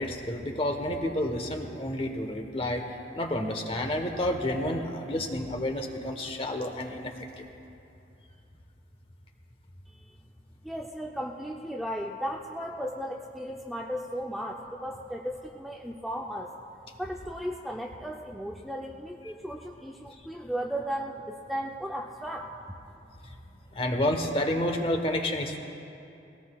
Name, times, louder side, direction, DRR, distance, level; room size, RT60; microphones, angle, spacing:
voice 1, 0.0-2.8 3.1-7.1 7.4-7.5 23.7-25.6, left 1 dB, 30° left, 4 dB, 1.1 m, -30 dB
voice 2, 10.6-16.5 17.0-22.5, equal, ahead, -1 dB, 0.5 m, -35 dB
22.0 x 17.5 x 2.3 m, 2.8 s
head